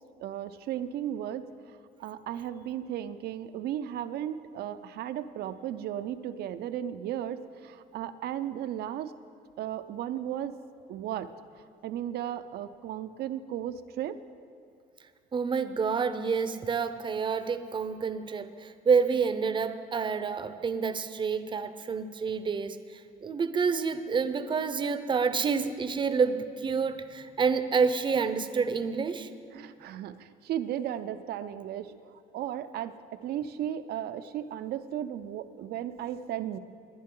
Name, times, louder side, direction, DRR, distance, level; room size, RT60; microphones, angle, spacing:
voice 1, 0.2-1.5 2.0-9.1 9.6-10.6 10.9-11.3 11.8-14.2 29.5-36.6, right 11 dB, 70° right, 12 dB, 0.6 m, -35 dB
voice 2, 15.3-22.8 23.2-29.3, right 5 dB, 30° right, 11 dB, 0.6 m, -28 dB
20.0 x 10.5 x 3.8 m, 2.4 s
cardioid pair, 110°, 17 cm